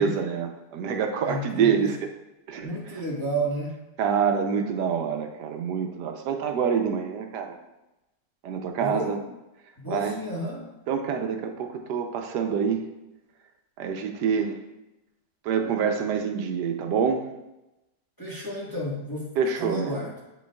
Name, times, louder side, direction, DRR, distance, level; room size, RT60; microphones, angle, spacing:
voice 1, 0.0-2.0 2.5-2.7 4.0-7.6 8.4-9.2 9.9-10.2 10.9-12.8 13.8-14.6 15.4-17.2 19.4-20.0, right 7 dB, 85° right, 5 dB, 1.2 m, -26 dB
voice 2, 1.2-1.9 2.6-3.7 8.8-9.2 9.8-10.7 18.2-20.1, right 1 dB, 15° left, -6 dB, 1.2 m, -31 dB
8.4 x 5.2 x 2.3 m, 0.98 s
omnidirectional pair, 1.8 m